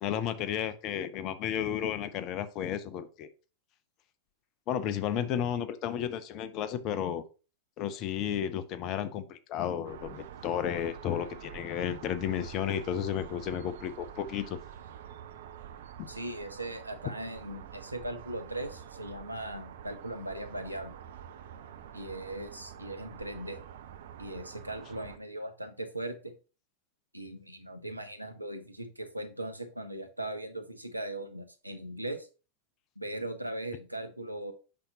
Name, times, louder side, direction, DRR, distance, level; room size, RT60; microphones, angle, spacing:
voice 1, 0.0-3.3 4.7-7.2 7.8-14.6, left 9 dB, 40° left, 13 dB, 0.8 m, -33 dB
sound 1, 9.8-25.2, right 9 dB, 60° right, 0.6 m, -47 dB
voice 2, 16.1-21.0 21.9-23.6 24.2-26.3 27.1-32.3 33.0-34.5, right 1 dB, 85° right, 7 dB, 0.9 m, -39 dB
8.6 x 5.8 x 2.8 m, 0.33 s
figure-of-eight pair, 90°, 0 cm